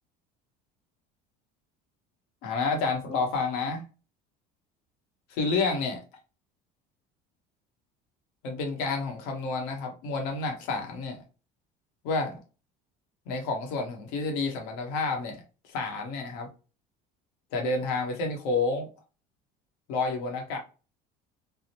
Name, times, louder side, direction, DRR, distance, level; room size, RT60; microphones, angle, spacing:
voice 1, 2.4-3.8 5.4-6.0 8.4-11.2 12.0-12.4 13.3-16.5 17.5-18.9 19.9-20.6, left 3 dB, 85° left, 1.1 m, -29 dB
3.6 x 2.0 x 2.8 m
cardioid pair, 135°, 17 cm